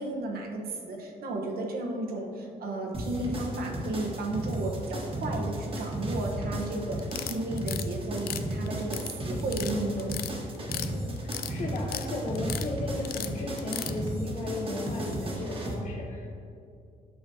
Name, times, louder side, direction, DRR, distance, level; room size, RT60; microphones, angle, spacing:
voice 1, 0.0-10.2, right 2 dB, 70° right, 1 dB, 1.1 m, -33 dB
sound 1, 2.9-15.7, right 1 dB, 35° right, 1.4 m, -34 dB
sound 2, 7.0-7.9 8.2-9.1 9.4-9.7 10.0-10.9 11.2-12.1 12.3-12.7 13.0-13.9, left 11 dB, 70° left, 0.4 m, -35 dB
voice 2, 10.6-16.3, left 2 dB, 50° left, -3 dB, 0.8 m, -35 dB
8.7 x 6.0 x 2.7 m, 2.5 s
cardioid pair, 100°, 16 cm